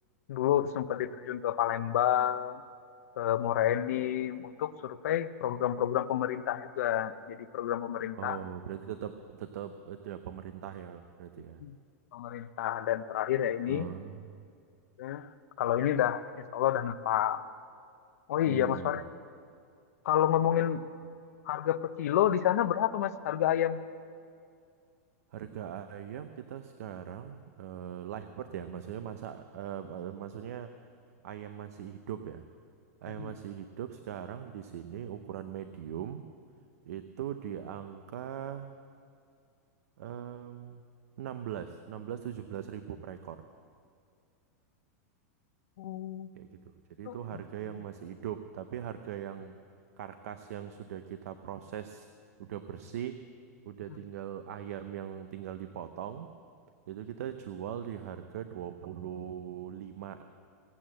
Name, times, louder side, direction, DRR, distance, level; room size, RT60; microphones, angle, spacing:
voice 1, 0.3-2.6 3.2-8.4 11.6-11.7 12.1-13.9 15.0-15.3 15.6-17.4 18.3-19.0 20.1-20.8 21.5-23.8 33.2-33.3 45.8-46.3 47.1-47.2, left 11 dB, 70° left, 12 dB, 0.7 m, -29 dB
voice 2, 8.2-11.6 13.7-14.4 18.5-19.1 25.3-30.7 31.2-32.4 33.0-36.3 36.8-38.7 40.0-40.8 41.2-43.4 46.4-46.5 47.0-49.5 50.0-52.1 52.4-53.2 53.7-56.3 56.9-60.2, right 10 dB, 70° right, 9 dB, 0.7 m, -40 dB
17.0 x 8.6 x 7.6 m, 2.3 s
supercardioid pair, 150°, 9 cm